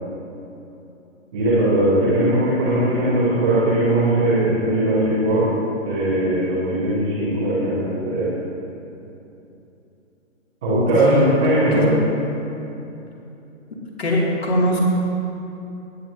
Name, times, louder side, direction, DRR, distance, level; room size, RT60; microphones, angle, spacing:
voice 1, 1.3-5.5 5.8-8.3 10.6-11.9, right 1 dB, 5° right, -10 dB, 0.4 m, -19 dB
voice 2, 11.5-12.0 14.0-14.8, left 1 dB, 50° left, -2 dB, 2.3 m, -21 dB
16.5 x 9.1 x 2.6 m, 2.9 s
figure-of-eight pair, 130°, 39 cm